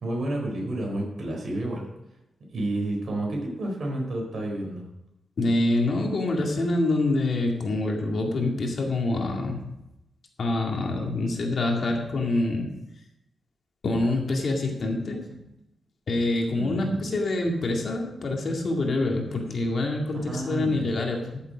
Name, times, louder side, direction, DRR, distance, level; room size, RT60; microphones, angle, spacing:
voice 1, 0.0-1.9 2.5-4.8 16.6-17.0 20.3-20.9, right 1 dB, 55° right, 0 dB, 4.2 m, -30 dB
voice 2, 5.4-9.6 10.4-12.8 13.8-15.4 16.1-21.4, left 2 dB, 50° left, 1 dB, 2.2 m, -26 dB
13.5 x 7.2 x 5.1 m, 0.89 s
wide cardioid pair, 145°, 0 cm